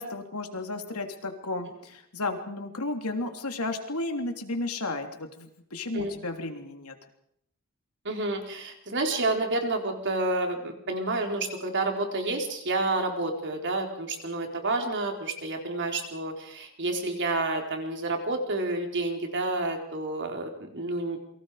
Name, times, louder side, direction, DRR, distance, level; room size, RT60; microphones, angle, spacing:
voice 1, 0.0-7.0, left 2 dB, 90° left, 5 dB, 3.2 m, -33 dB
voice 2, 8.0-21.2, right 2 dB, 55° right, 3 dB, 4.2 m, -29 dB
28.5 x 24.0 x 5.0 m, 0.71 s
head